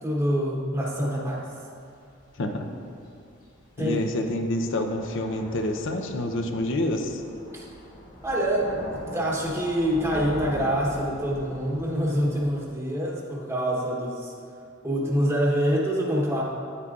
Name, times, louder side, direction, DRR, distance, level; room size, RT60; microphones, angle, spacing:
voice 1, 0.0-1.5 3.8-4.0 7.5-7.6 8.2-8.9 9.1-14.3 14.8-16.4, equal, 15° right, -5 dB, 1.0 m, -25 dB
Thunder / Rain, 1.8-12.7, equal, 40° left, 1.9 m, -42 dB
voice 2, 3.8-7.2, left 1 dB, 65° left, 5 dB, 0.6 m, -27 dB
9.6 x 9.3 x 2.4 m, 2.4 s
head